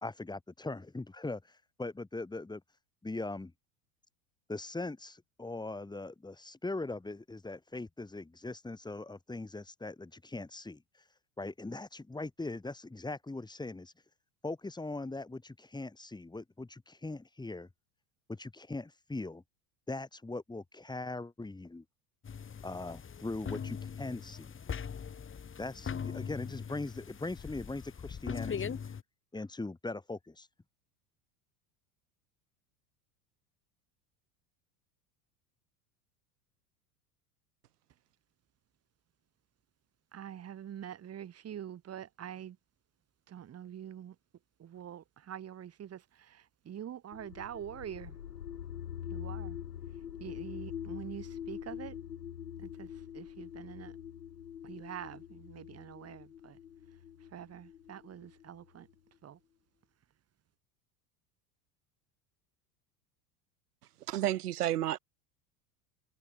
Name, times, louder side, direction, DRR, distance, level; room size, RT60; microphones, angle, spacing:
voice 1, 0.0-2.6 3.0-3.5 4.5-13.9 14.4-17.7 18.3-19.4 19.9-21.8 22.6-24.5 25.6-28.9 29.3-30.5, left 2 dB, 10° left, 3.5 m, -40 dB
sound 1, 22.2-29.0, left 7 dB, 25° left, 6.8 m, -40 dB
voice 2, 40.1-42.6 43.3-44.1 44.6-48.2 49.1-49.6 50.2-52.0 52.6-53.9 54.6-56.6 57.3-58.9 59.2-59.4, right 10 dB, 30° right, 3.2 m, -45 dB
sound 2, 47.1-58.9, left 9 dB, 85° left, 7.6 m, -44 dB
voice 3, 64.1-65.0, right 13 dB, 75° right, 2.1 m, -30 dB
hypercardioid pair, 85°, 46 cm